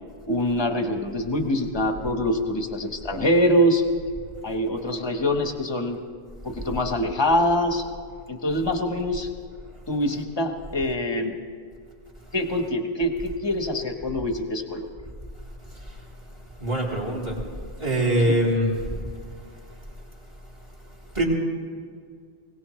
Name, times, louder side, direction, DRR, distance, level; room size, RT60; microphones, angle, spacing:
voice 1, 0.3-3.8 4.4-6.0 6.4-7.8 8.3-9.3 9.9-11.3 12.3-14.9 18.2-18.3, left 1 dB, 25° left, 5 dB, 1.2 m, -24 dB
voice 2, 16.6-17.4 17.8-18.7 21.1-21.2, right 1 dB, 30° right, -3 dB, 3.2 m, -23 dB
21.5 x 18.0 x 3.2 m, 2.1 s
omnidirectional pair, 1.0 m